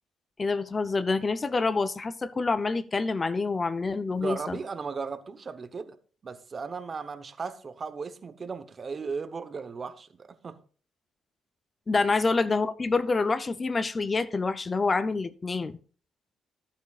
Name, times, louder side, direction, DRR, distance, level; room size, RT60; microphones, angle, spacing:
voice 1, 0.4-4.6 11.9-15.8, left 3 dB, 30° left, 0.5 m, -27 dB
voice 2, 4.2-6.0 6.2-10.6 12.0-12.1, right 5 dB, 40° right, 0.9 m, -36 dB
14.0 x 8.8 x 2.4 m
cardioid pair, 90°, 0 cm